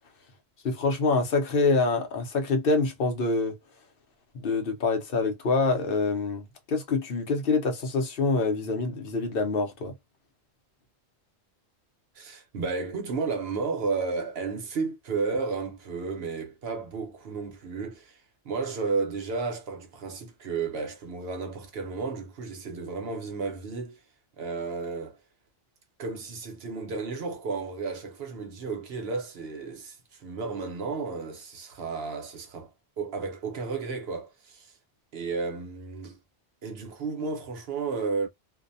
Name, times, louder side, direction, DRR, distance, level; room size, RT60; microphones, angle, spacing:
voice 1, 0.6-3.5 4.3-9.9, left 3 dB, 65° left, 0.8 m, -26 dB
voice 2, 12.2-18.2 18.4-24.0 24.4-25.2 26.0-32.7 33.0-34.7 35.1-36.2 36.6-38.3, right 4 dB, 65° right, 1.0 m, -33 dB
2.5 x 2.2 x 2.6 m
omnidirectional pair, 1.1 m